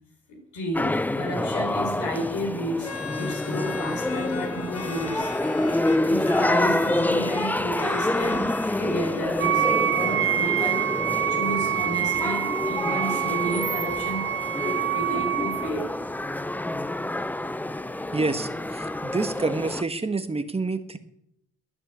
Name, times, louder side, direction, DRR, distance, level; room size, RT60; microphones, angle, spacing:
voice 1, 0.3-5.3 6.1-11.0 11.3-16.0 18.1-18.2, equal, 70° left, 4.4 m, -32 dB
sound 1, 0.7-19.8, left 1 dB, 5° left, 0.5 m, -28 dB
sound 2, 2.8-9.7, left 5 dB, 50° left, 2.3 m, -39 dB
Wind instrument woodwind instrument, 9.4-15.7, right 10 dB, 45° right, 0.7 m, -26 dB
voice 2, 18.1-21.0, right 3 dB, 20° right, 1.5 m, -28 dB
13.0 x 10.5 x 8.4 m
cardioid pair, 90°, 30 cm